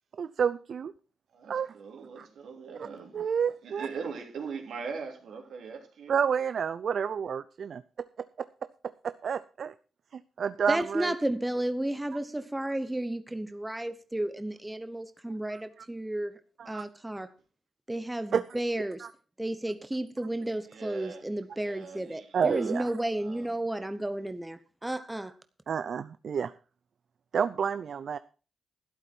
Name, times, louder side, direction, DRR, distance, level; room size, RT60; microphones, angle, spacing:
voice 1, 0.2-0.9 1.5-1.7 2.2-2.3 3.1-3.9 6.1-7.8 9.0-9.7 10.1-11.1 15.5-15.6 16.6-16.8 18.3-18.4 19.0-19.1 22.3-22.9 25.7-26.5 27.3-28.2, right 7 dB, 60° right, 0.5 m, -29 dB
voice 2, 1.3-6.1 20.7-22.8 23.2-23.5, right 5 dB, 80° right, 3.2 m, -41 dB
voice 3, 10.7-16.3 16.7-17.3 17.9-19.1 19.4-25.3, right 1 dB, 10° right, 0.9 m, -32 dB
12.5 x 11.5 x 4.4 m
cardioid pair, 115°, 0 cm